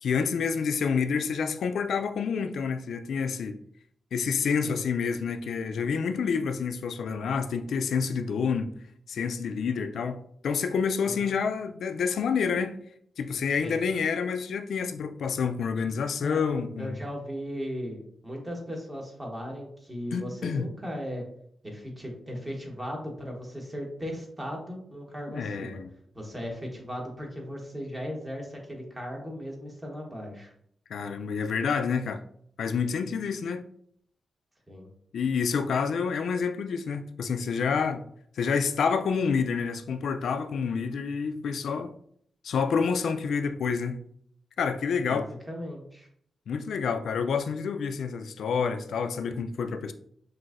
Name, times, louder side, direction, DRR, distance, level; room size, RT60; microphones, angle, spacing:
voice 1, 0.0-3.6 4.1-8.7 9.1-12.8 13.2-17.0 20.1-20.7 25.3-25.9 30.9-32.2 32.6-33.6 35.1-38.1 38.4-41.9 42.4-44.0 44.6-45.3 46.5-49.9, left 6 dB, 80° left, 0.3 m, -28 dB
voice 2, 16.8-21.2 21.6-25.8 26.1-30.5 34.7-34.9 45.1-46.1, equal, 20° right, 1.1 m, -37 dB
5.8 x 2.7 x 2.5 m
wide cardioid pair, 110°, 0 cm